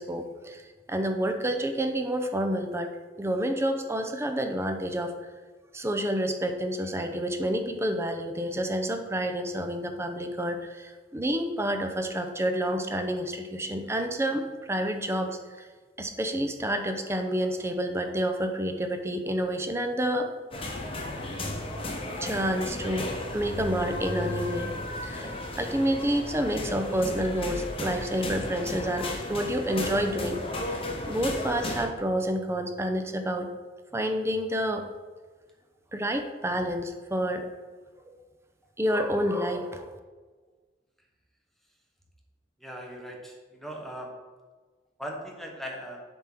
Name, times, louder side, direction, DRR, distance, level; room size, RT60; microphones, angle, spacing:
voice 1, 0.0-2.9 3.2-5.1 5.7-15.7 16.0-20.3 22.2-24.7 25.0-30.4 31.1-33.5 33.9-34.8 35.9-37.5 38.0-38.1 38.8-39.9, equal, 15° right, 6 dB, 0.6 m, -29 dB
sound 1, 20.5-31.9, left 1 dB, 30° left, 1.0 m, -34 dB
voice 2, 42.6-44.1 45.0-46.0, equal, ahead, 0 dB, 1.1 m, -39 dB
7.9 x 3.6 x 5.9 m, 1.4 s
head